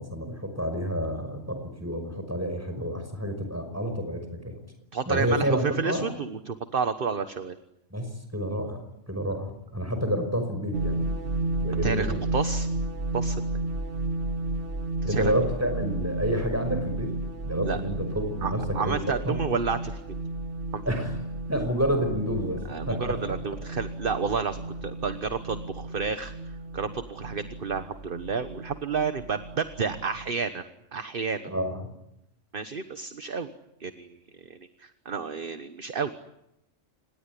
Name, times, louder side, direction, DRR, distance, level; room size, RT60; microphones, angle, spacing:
voice 1, 0.0-4.6 5.1-6.1 7.9-11.1 11.6-12.2 15.1-17.1 17.4-19.0 19.2-19.4 20.9-21.1 21.5-23.2 31.4-31.9, equal, 10° right, 6 dB, 5.7 m, -29 dB
voice 2, 4.9-7.6 11.8-12.7 13.1-13.4 15.0-15.3 17.6-17.8 18.4-20.0 20.7-20.8 22.7-26.3 26.7-30.6 30.9-31.5 32.5-33.5 33.8-34.2 34.8-36.1, right 5 dB, 45° right, 10 dB, 1.3 m, -30 dB
sound 1, 10.7-30.3, right 2 dB, 65° right, 1.8 m, -33 dB
26.5 x 20.0 x 10.0 m, 0.85 s
omnidirectional pair, 1.3 m